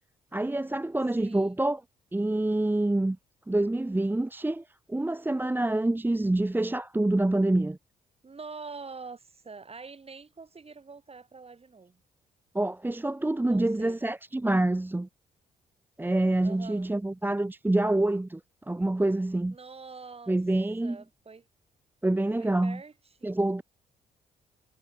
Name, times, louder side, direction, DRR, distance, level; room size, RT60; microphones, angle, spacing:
voice 1, 0.3-1.8 2.1-3.2 3.5-7.8 12.5-15.1 16.0-18.4 18.7-19.6 20.3-21.0 22.0-22.8 23.2-23.6, right 2 dB, 10° right, 0.9 m, -26 dB
voice 2, 1.2-1.6 8.2-12.0 13.5-14.1 16.4-16.9 19.5-20.4 20.8-21.4 22.4-22.9 23.2-23.4, right 4 dB, 35° right, 4.0 m, -45 dB
supercardioid pair, 55°, 17 cm